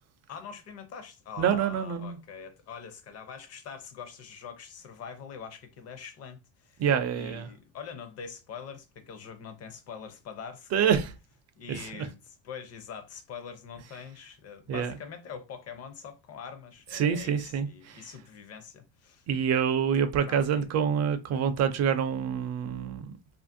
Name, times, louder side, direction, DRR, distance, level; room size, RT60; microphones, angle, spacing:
voice 1, 0.3-6.8 7.1-11.0 11.6-19.2 20.2-20.7, left 6 dB, 35° left, 0.6 m, -44 dB
voice 2, 1.4-2.2 6.8-7.5 10.7-11.1 11.7-12.1 14.7-14.9 16.9-18.0 19.3-23.1, right 7 dB, 40° right, 0.4 m, -27 dB
2.8 x 2.5 x 2.5 m
cardioid pair, 140°, 43 cm